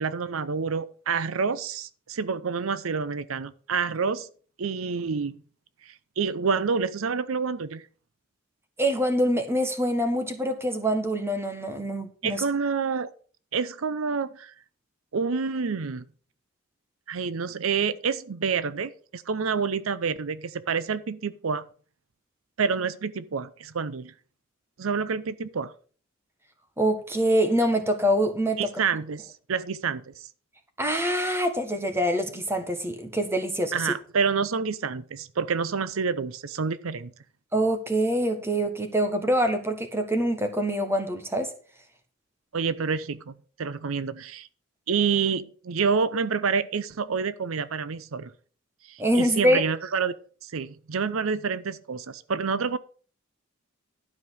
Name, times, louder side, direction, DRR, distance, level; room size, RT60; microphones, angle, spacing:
voice 1, 0.0-4.3 4.6-5.3 5.8-7.9 12.2-13.1 13.5-14.5 15.1-16.0 17.1-21.7 22.6-24.1 24.8-25.7 28.6-30.0 33.7-37.1 42.5-44.5 44.9-48.3 48.9-50.1 50.4-52.8, right 5 dB, 85° right, 0.6 m, -28 dB
voice 2, 8.8-12.4 26.8-28.6 30.8-33.8 37.5-41.5 49.0-49.6, equal, 10° right, 1.4 m, -25 dB
12.0 x 5.3 x 6.3 m
head